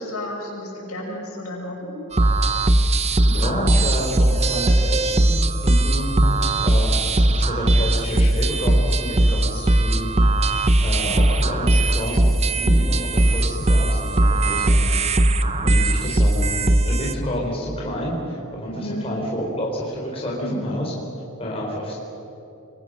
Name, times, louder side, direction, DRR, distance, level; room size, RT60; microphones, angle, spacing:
voice 1, 0.0-1.9 18.7-19.1 20.4-20.7, equal, 75° left, -2 dB, 7.1 m, -32 dB
sound 1, 2.1-17.1, right 1 dB, 30° right, 0.8 m, -19 dB
voice 2, 3.2-6.1 6.6-10.1 10.8-12.3 12.6-14.9 15.4-20.9 21.4-22.0, equal, 25° left, -3 dB, 4.1 m, -29 dB
27.0 x 23.0 x 6.4 m, 2.9 s
head